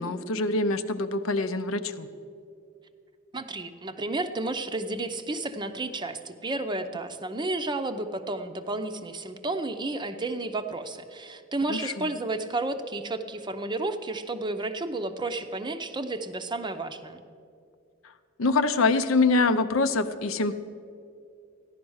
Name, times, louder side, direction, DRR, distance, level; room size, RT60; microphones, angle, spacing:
voice 1, 0.0-2.1 11.7-12.1 18.4-20.5, left 3 dB, 75° left, 10 dB, 0.7 m, -25 dB
voice 2, 3.3-17.2, right 2 dB, 20° right, 8 dB, 0.6 m, -32 dB
14.5 x 11.0 x 6.3 m, 2.4 s
head